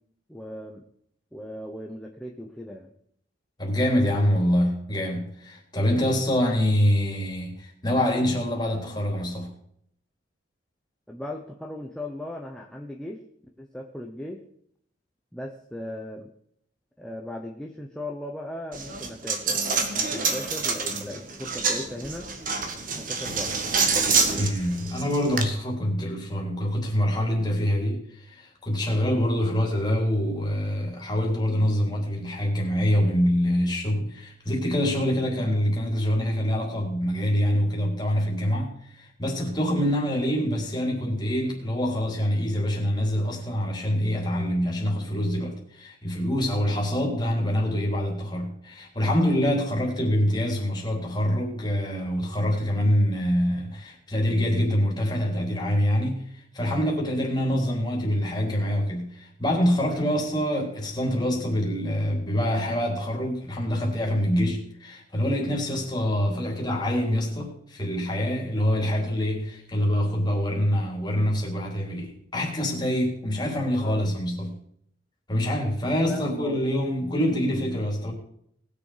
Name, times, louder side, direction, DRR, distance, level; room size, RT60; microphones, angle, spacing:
voice 1, 0.3-0.9 1.3-2.9 11.1-13.2 13.6-14.4 15.3-16.3 17.0-22.3 23.0-23.5 29.0-29.3 65.6-65.8 73.8-74.1 76.1-76.6, left 1 dB, 5° left, 1.0 m, -37 dB
voice 2, 3.6-9.5 24.3-56.2 56.5-74.5 75.3-78.1, equal, 20° left, 3.4 m, -25 dB
Coin (dropping), 18.7-25.4, right 5 dB, 45° right, 1.7 m, -27 dB
19.5 x 7.0 x 5.1 m
head